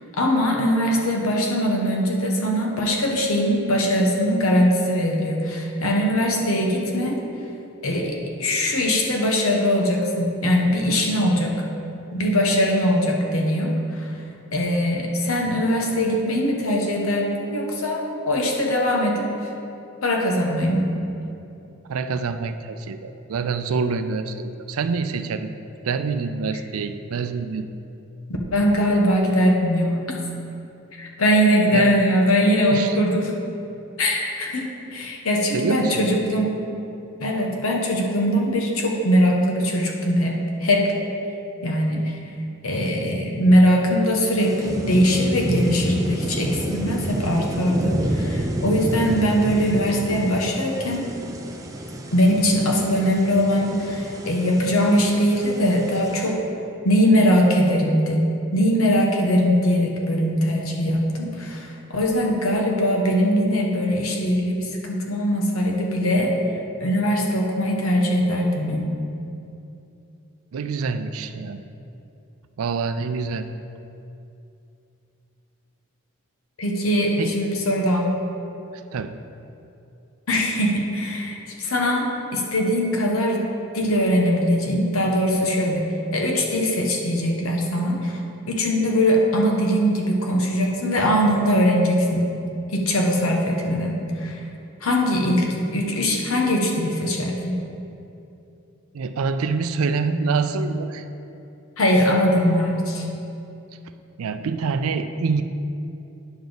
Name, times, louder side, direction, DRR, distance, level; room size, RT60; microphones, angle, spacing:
voice 1, 0.1-7.2 7.8-11.5 12.1-14.1 14.5-19.3 20.0-20.9 28.5-30.0 31.0-33.3 34.0-36.6 37.2-40.9 41.6-42.2 42.6-51.1 52.1-56.4 56.8-58.2 58.5-66.3 66.8-68.9 76.6-78.1 80.3-83.5 83.7-88.2 88.5-92.3 92.7-94.4 94.8-95.5 95.7-97.6 101.8-103.0, equal, 80° left, 0 dB, 1.2 m, -21 dB
voice 2, 21.9-25.5 25.8-27.7 31.7-31.9 32.7-33.0 35.5-36.4 70.5-71.6 72.6-73.5 77.2-77.4 78.7-79.2 98.9-101.0 104.2-105.4, right 4 dB, 80° right, 9 dB, 0.4 m, -26 dB
sound 1, 44.4-56.3, right 1 dB, 15° right, 0.5 m, -29 dB
9.4 x 7.0 x 3.9 m, 2.8 s
head